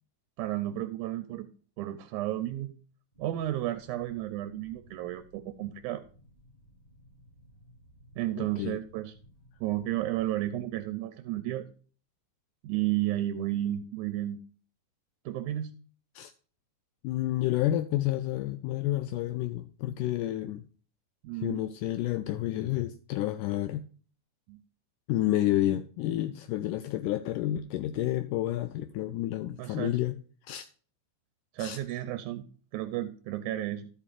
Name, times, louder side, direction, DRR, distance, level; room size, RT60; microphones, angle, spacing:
voice 1, 0.4-1.5 1.8-2.7 3.2-6.0 8.2-9.1 9.6-11.7 12.6-14.4 15.3-15.8 21.2-21.6 24.5-24.6 29.6-30.0 31.5-32.5 32.7-33.9, right 14 dB, 80° right, 10 dB, 1.9 m, -32 dB
sound 1, 3.1-10.8, equal, 10° left, 2.6 m, -58 dB
voice 2, 8.4-8.8 16.2-16.3 17.0-20.6 21.3-23.8 25.1-30.2 30.5-30.7 31.6-31.8, left 14 dB, 80° left, 9 dB, 2.0 m, -30 dB
12.5 x 8.5 x 2.5 m, 0.41 s
omnidirectional pair, 3.8 m